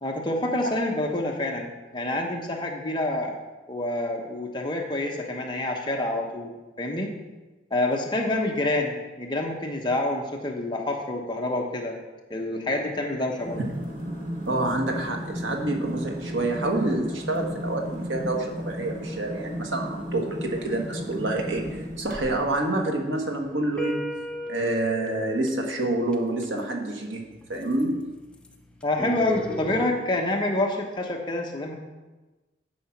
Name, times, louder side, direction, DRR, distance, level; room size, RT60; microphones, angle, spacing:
voice 1, 0.0-3.4 3.7-6.5 6.8-7.1 7.7-11.9 12.3-13.6 28.8-31.8, left 1 dB, 25° left, 1 dB, 1.0 m, -27 dB
sound 1, 13.4-22.6, equal, 45° right, 1.7 m, -34 dB
voice 2, 14.5-24.2 24.5-28.1, right 2 dB, 85° right, 2 dB, 1.5 m, -28 dB
sound 2, 22.6-29.9, left 1 dB, 5° left, 0.6 m, -38 dB
10.0 x 5.0 x 5.8 m, 1.2 s
head